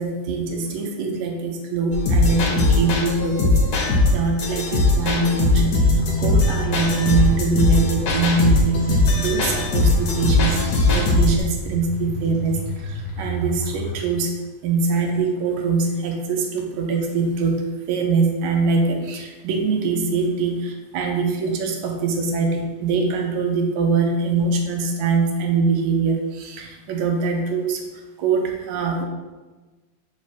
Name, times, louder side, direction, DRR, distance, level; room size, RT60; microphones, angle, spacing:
voice 1, 0.0-14.4 14.6-27.8 28.2-29.1, right 4 dB, 80° right, 3 dB, 1.4 m, -23 dB
sound 1, 1.9-11.4, left 2 dB, 60° left, 1.1 m, -19 dB
sound 2, 6.0-14.0, equal, 45° right, 0.9 m, -31 dB
3.6 x 3.1 x 4.2 m, 1.2 s
omnidirectional pair, 2.3 m